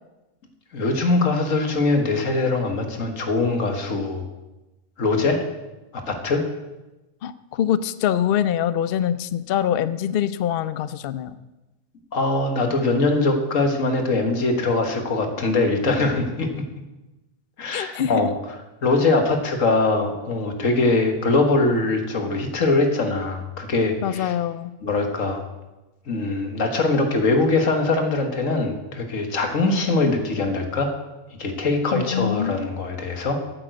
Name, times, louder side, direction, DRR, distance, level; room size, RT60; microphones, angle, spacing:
voice 1, 0.7-4.3 5.0-5.4 5.9-6.4 12.1-16.6 17.6-18.3 18.8-24.4 24.8-25.4 26.1-30.9 31.4-33.4, left 3 dB, 85° left, 5 dB, 1.9 m, -22 dB
voice 2, 7.2-11.4 17.7-18.3 24.0-24.7 31.9-32.7, left 10 dB, 60° left, 15 dB, 0.6 m, -24 dB
9.0 x 9.0 x 7.9 m, 1.1 s
omnidirectional pair, 1.3 m